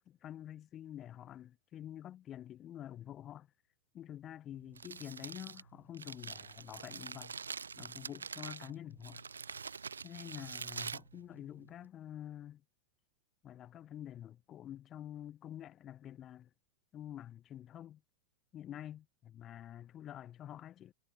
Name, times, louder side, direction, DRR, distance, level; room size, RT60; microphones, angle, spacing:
voice 1, 0.0-3.5 3.9-7.3 7.8-9.2 10.0-12.6 13.4-16.5 16.9-18.0 18.5-20.9, left 11 dB, 30° left, 1.9 m, -48 dB
Crumpling crinkling, 4.5-11.9, right 5 dB, 75° right, 0.8 m, -45 dB
figure-of-eight pair, 90°, 0 cm